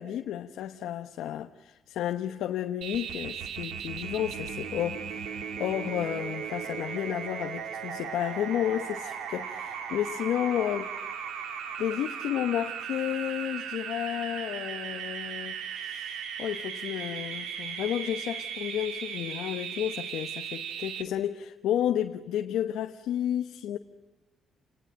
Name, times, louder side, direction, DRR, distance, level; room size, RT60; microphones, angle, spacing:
voice 1, 0.0-10.9 11.8-23.8, left 11 dB, 85° left, 1.1 m, -32 dB
sound 1, 2.8-21.0, right 7 dB, 85° right, 2.5 m, -37 dB
29.5 x 19.5 x 9.0 m
cardioid pair, 90°, 0 cm